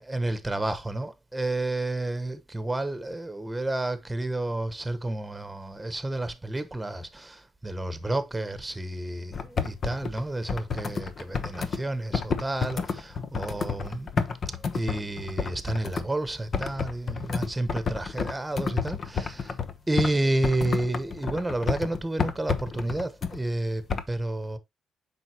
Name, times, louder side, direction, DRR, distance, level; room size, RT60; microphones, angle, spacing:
voice 1, 0.0-14.1 14.7-19.5 19.9-24.6, right 2 dB, 10° right, 1.2 m, -30 dB
sound 1, 9.3-11.8 12.1-16.0 16.5-20.2 20.4-23.4 23.9-24.0, left 5 dB, 50° left, 1.0 m, -30 dB
7.8 x 5.4 x 3.0 m
cardioid pair, 90°, 0 cm